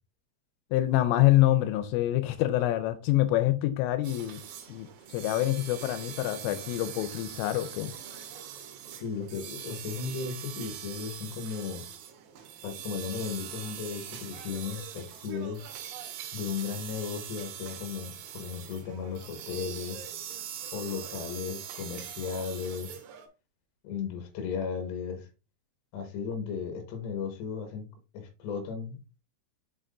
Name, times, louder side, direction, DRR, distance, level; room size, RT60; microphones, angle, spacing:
voice 1, 0.7-4.4 4.7-7.9, left 15 dB, 90° left, 3.2 m, -26 dB
sound 1, 4.0-23.3, right 9 dB, 70° right, 2.8 m, -42 dB
voice 2, 9.0-11.8 12.6-15.6 16.3-20.0 20.7-23.0 23.8-25.3 25.9-27.9 28.1-29.0, left 6 dB, 70° left, 3.3 m, -35 dB
6.5 x 6.0 x 2.6 m
omnidirectional pair, 5.6 m